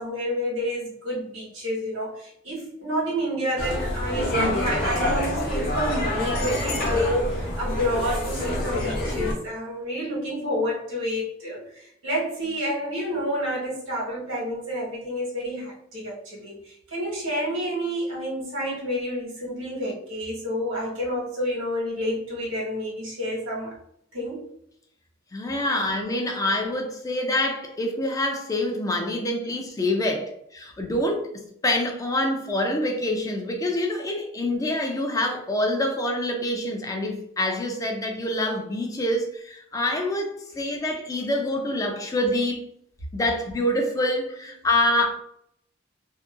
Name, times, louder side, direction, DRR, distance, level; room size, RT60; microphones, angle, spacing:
voice 1, 0.0-23.8 24.1-24.4 25.7-25.8, equal, 90° right, 1.2 m, -29 dB
sound 1, 3.6-9.3, left 1 dB, 50° left, 0.7 m, -26 dB
voice 2, 25.3-31.3 31.6-42.6 43.1-45.1, left 1 dB, 15° left, 0.3 m, -26 dB
2.7 x 2.2 x 2.3 m
head